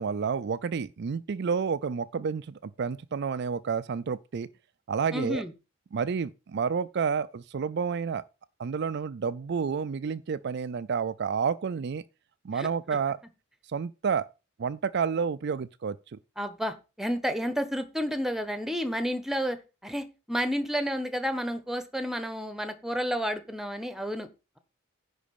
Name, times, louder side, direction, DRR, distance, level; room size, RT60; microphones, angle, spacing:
voice 1, 0.0-4.5 4.9-5.4 5.9-8.2 8.6-12.0 12.4-13.2 13.7-14.3 14.6-16.2, right 6 dB, 55° right, 0.4 m, -30 dB
voice 2, 5.1-5.5 12.5-12.7 16.4-19.6 19.8-24.3, equal, ahead, 1.1 m, -31 dB
10.5 x 4.1 x 6.9 m
head